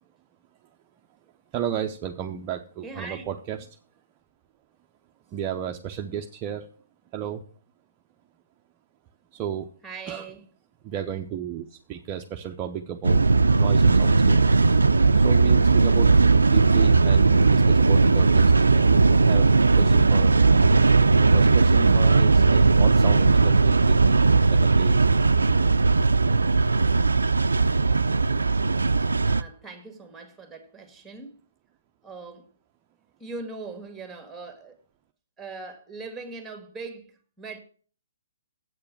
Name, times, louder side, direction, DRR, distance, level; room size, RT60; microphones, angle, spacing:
voice 1, 1.5-3.7 5.3-6.7 7.1-7.4 9.3-9.7 10.1-10.3 10.8-13.3 13.6-14.4 15.2-19.5 19.7-20.3 21.1-25.2, right 9 dB, 30° right, 0.7 m, -33 dB
voice 2, 2.8-3.3 9.8-10.4 29.3-31.4 32.0-32.5 33.2-34.8 35.4-37.6, right 3 dB, 5° right, 2.0 m, -40 dB
sound 1, 13.0-29.4, right 3 dB, 85° right, 0.5 m, -18 dB
8.2 x 6.7 x 7.1 m
figure-of-eight pair, 135°, 0 cm